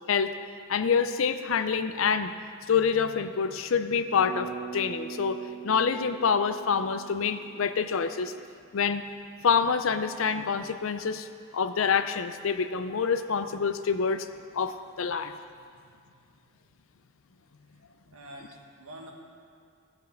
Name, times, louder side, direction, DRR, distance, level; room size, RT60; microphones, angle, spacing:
voice 1, 0.7-2.3 2.7-8.3 8.7-9.0 9.4-11.3 11.5-14.3 14.5-15.3, left 6 dB, 65° left, 10 dB, 0.5 m, -26 dB
Bass guitar, 4.2-8.3, right 7 dB, 40° right, 0.7 m, -42 dB
voice 2, 15.6-16.2 16.5-16.6 18.1-19.1, right 1 dB, 80° right, 0 dB, 1.5 m, -48 dB
15.5 x 5.3 x 5.8 m, 2.2 s
head